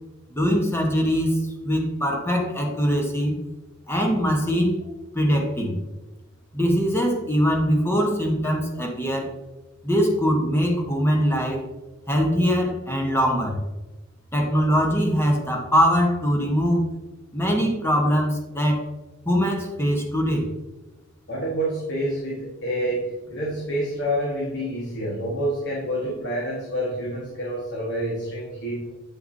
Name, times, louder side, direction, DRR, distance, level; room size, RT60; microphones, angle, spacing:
voice 1, 0.3-3.4 3.9-4.9 5.1-5.8 6.5-9.3 9.8-11.6 12.1-13.6 14.3-16.9 17.3-18.8 19.2-20.5, equal, 10° left, 1 dB, 1.1 m, -22 dB
voice 2, 21.3-28.9, right 1 dB, 60° left, -4 dB, 1.5 m, -28 dB
7.8 x 5.8 x 2.7 m, 1.1 s
head